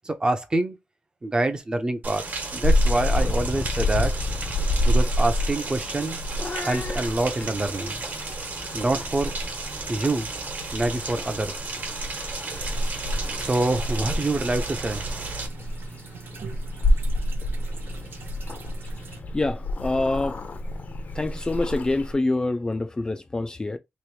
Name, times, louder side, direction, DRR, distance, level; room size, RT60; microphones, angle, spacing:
voice 1, 0.0-0.8 1.2-2.2 2.5-4.1 4.9-6.2 6.6-8.0 8.7-9.3 9.9-10.3 10.7-11.5 13.3-15.0, right 2 dB, 25° right, 0.6 m, -26 dB
Rain, 2.0-15.5, right 3 dB, 60° right, 1.2 m, -34 dB
Purr / Meow, 2.6-22.1, left 1 dB, 50° left, 0.7 m, -28 dB
sound 1, 12.5-19.2, right 5 dB, 80° right, 0.7 m, -43 dB
voice 2, 19.3-20.5 21.1-23.8, left 2 dB, 20° left, 0.4 m, -26 dB
3.0 x 3.0 x 3.2 m
wide cardioid pair, 145°, 4 cm